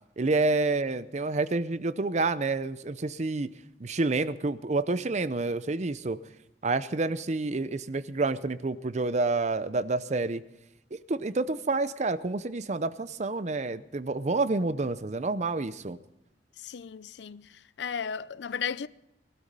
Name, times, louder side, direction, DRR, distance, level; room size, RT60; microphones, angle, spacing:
voice 1, 0.2-3.5 3.8-6.2 6.6-10.4 11.1-16.0, right 3 dB, 40° right, 0.6 m, -28 dB
voice 2, 16.6-18.9, left 7 dB, 75° left, 0.5 m, -35 dB
19.5 x 12.5 x 5.4 m
head